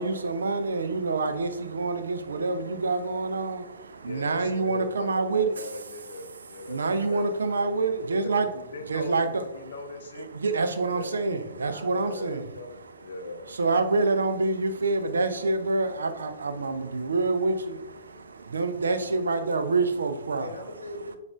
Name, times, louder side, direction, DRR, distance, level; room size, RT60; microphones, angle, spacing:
voice 1, 0.0-5.7 6.6-8.5 8.9-9.4 10.2-12.4 13.5-20.5, right 3 dB, 65° right, 8 dB, 0.4 m, -27 dB
voice 2, 4.0-7.2 8.2-10.3 10.6-11.2 11.9-12.4 13.0-13.5, left 3 dB, 55° left, 6 dB, 0.5 m, -40 dB
voice 3, 6.8-7.2 11.6-12.7 20.4-21.2, left 1 dB, 90° right, 1 dB, 0.9 m, -41 dB
6.9 x 2.4 x 2.3 m, 0.93 s
figure-of-eight pair, 115°, 0 cm